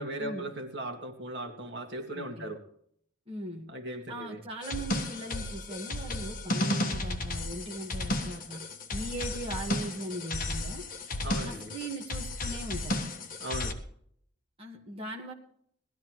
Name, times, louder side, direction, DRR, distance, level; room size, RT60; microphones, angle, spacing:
voice 1, 0.0-2.6 3.7-4.4 11.2-11.7 13.4-13.8, right 1 dB, 55° right, 3 dB, 2.1 m, -38 dB
voice 2, 2.1-2.5 3.3-3.7 4.1-8.6 8.9-10.9 11.4-13.0 14.6-15.3, right 1 dB, 30° right, -1 dB, 1.9 m, -39 dB
sound 1, 4.6-13.7, left 2 dB, 40° left, 1.4 m, -33 dB
19.0 x 13.5 x 3.2 m, 0.64 s
head